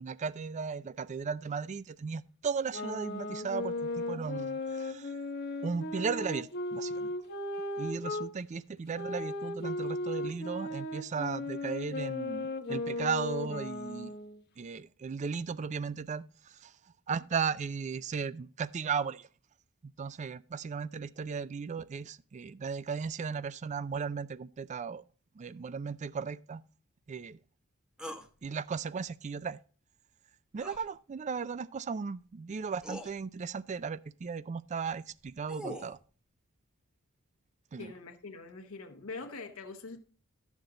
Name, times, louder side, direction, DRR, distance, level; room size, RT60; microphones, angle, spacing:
voice 1, 0.0-5.1 5.6-7.1 7.8-14.1 14.6-16.7 17.1-19.3 19.8-25.0 25.4-26.6 27.1-27.4 28.4-29.6 30.5-36.0 37.7-37.9, right 5 dB, 35° right, 0.3 m, -36 dB
sound 1, 2.7-8.3 8.9-14.4, left 2 dB, 50° left, 0.9 m, -36 dB
sound 2, 28.0-28.3 30.6-30.9 32.2-32.3 32.8-33.1 35.1-36.0, equal, 5° right, 0.9 m, -42 dB
voice 2, 37.8-40.0, left 3 dB, 80° left, 1.1 m, -43 dB
12.0 x 7.3 x 3.8 m
head